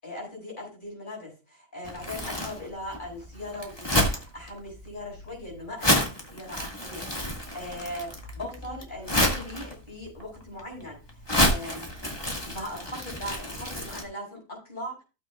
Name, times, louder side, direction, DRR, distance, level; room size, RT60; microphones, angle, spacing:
voice 1, 0.0-8.1 8.3-11.9 12.5-15.0, left 1 dB, 35° left, -1 dB, 5.7 m, -39 dB
Crumpling crinkling, 1.8-14.0, left 1 dB, 20° left, 1.8 m, -30 dB
15.5 x 7.6 x 2.3 m, 0.31 s
omnidirectional pair, 1.4 m